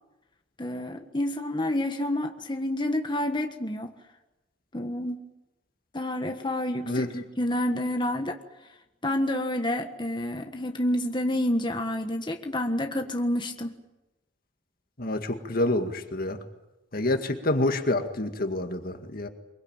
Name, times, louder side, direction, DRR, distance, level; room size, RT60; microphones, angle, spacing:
voice 1, 0.6-3.9 4.7-5.2 5.9-8.4 9.0-13.7, left 1 dB, 25° left, 5 dB, 1.5 m, -29 dB
voice 2, 15.0-16.4 16.9-19.3, left 1 dB, 50° left, 6 dB, 2.0 m, -27 dB
24.0 x 23.0 x 8.9 m, 0.98 s
head